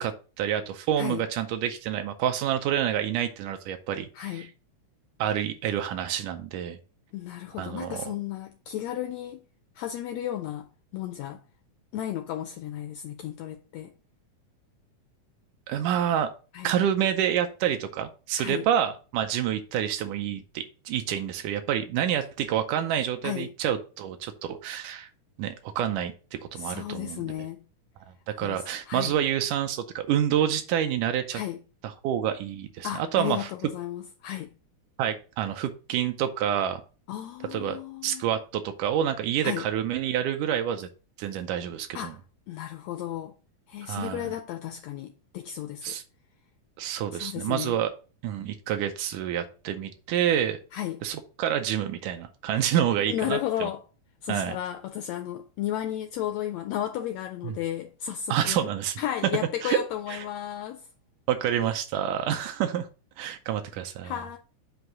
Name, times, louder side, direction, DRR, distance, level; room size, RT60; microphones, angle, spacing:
voice 1, 0.0-4.5 5.2-6.8 7.6-8.0 15.7-16.3 16.6-25.1 25.4-27.3 28.4-31.4 31.8-33.5 35.0-36.8 37.5-37.8 38.0-40.9 41.2-42.1 43.8-44.3 45.8-46.0 46.8-47.9 48.2-50.6 51.0-53.7 54.3-54.6 57.4-57.6 58.3-59.0 59.6-59.8 60.1-60.3 61.3-62.9 63.2-64.1, right 10 dB, 85° right, 2.1 m, -28 dB
voice 2, 4.1-4.5 7.1-9.4 9.8-10.7 10.9-11.4 11.9-13.9 16.5-16.7 18.4-18.6 23.2-23.5 26.6-27.6 28.4-29.1 31.3-31.6 32.8-34.5 37.1-38.2 39.4-39.7 41.9-42.2 42.5-43.3 43.7-46.0 47.1-47.8 50.7-51.0 53.1-53.8 54.2-58.7 59.0-60.9 64.0-64.4, left 11 dB, 90° left, 1.4 m, -33 dB
7.9 x 2.6 x 5.8 m
omnidirectional pair, 3.5 m